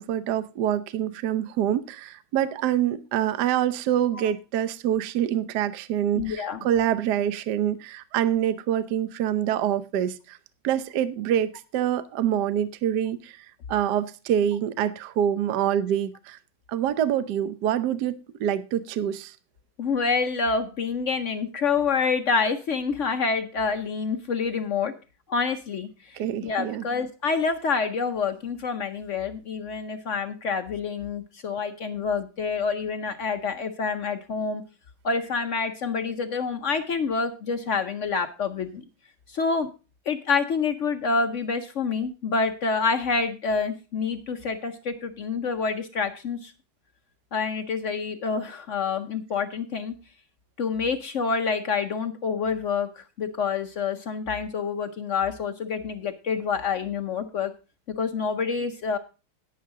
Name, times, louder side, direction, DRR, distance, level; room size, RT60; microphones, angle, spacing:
voice 1, 0.0-10.4 10.6-16.4 16.7-19.3 26.1-26.8, right 10 dB, 65° right, 14 dB, 1.2 m, -26 dB
voice 2, 6.1-6.7 19.8-24.9 25.3-34.6 35.0-38.8 39.3-39.7 40.1-46.5 47.3-49.9 50.6-57.5 58.0-59.0, left 5 dB, 70° left, 8 dB, 0.7 m, -27 dB
11.0 x 9.6 x 3.7 m, 0.32 s
omnidirectional pair, 2.2 m